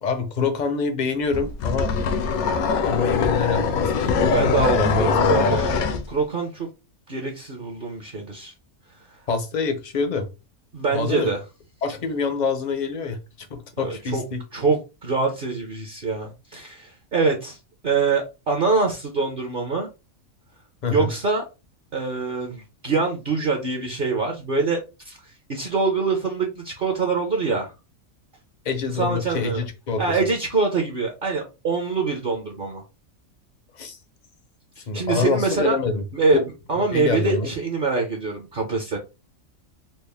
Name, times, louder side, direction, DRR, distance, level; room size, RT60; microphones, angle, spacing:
voice 1, 0.0-1.9 2.8-4.3 4.8-5.6 9.3-10.3 10.9-11.3 11.8-13.2 13.5-14.4 20.8-21.1 28.6-30.2 33.8-34.0 34.9-36.0 36.3-36.4 36.9-37.5, left 4 dB, 50° left, 0.5 m, -25 dB
sound 1, 1.3-6.0, left 5 dB, 85° left, 1.1 m, -22 dB
voice 2, 4.0-6.7 7.1-8.5 10.7-11.4 13.8-14.2 14.5-17.6 17.8-19.9 20.9-21.4 21.9-25.2 25.5-27.7 29.0-29.6 30.0-32.8 34.8-35.8 36.1-36.4 36.7-39.0, right 4 dB, 50° right, 0.7 m, -24 dB
4.1 x 2.0 x 3.3 m
omnidirectional pair, 1.5 m